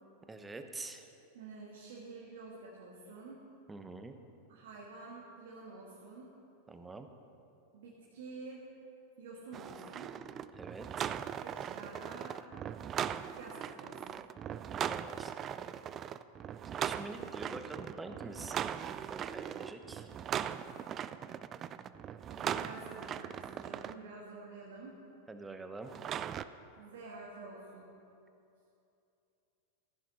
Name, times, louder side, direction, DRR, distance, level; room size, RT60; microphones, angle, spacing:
voice 1, 0.3-1.1 3.7-4.1 6.7-7.1 10.6-11.1 14.7-15.3 16.7-18.6 19.1-20.1 25.3-25.9, right 3 dB, 15° right, 7 dB, 1.0 m, -46 dB
voice 2, 1.3-3.4 4.5-6.3 7.7-8.6 9.2-10.1 11.4-12.4 13.3-14.2 21.6-21.7 22.3-25.0 26.8-27.9, right 3 dB, 70° right, -4 dB, 2.0 m, -49 dB
sound 1, 9.5-23.9 25.9-26.4, right 9 dB, 35° right, 0.4 m, -39 dB
15.0 x 10.5 x 4.2 m, 2.7 s
hypercardioid pair, 95°, 0 cm